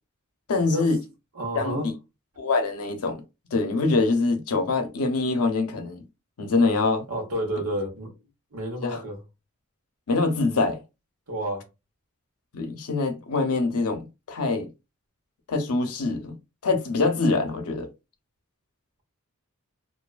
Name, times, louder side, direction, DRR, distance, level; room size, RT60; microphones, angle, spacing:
voice 1, 0.5-1.0 1.5-1.9 2.4-3.2 3.5-6.0 6.4-7.0 8.8-9.0 10.1-10.8 12.5-14.7 15.5-16.4 16.6-17.9, left 3 dB, 80° left, 0.6 m, -24 dB
voice 2, 1.3-1.9 7.1-8.1 8.5-9.2 11.3-11.7, right 1 dB, 80° right, 1.1 m, -30 dB
2.6 x 2.2 x 2.4 m
head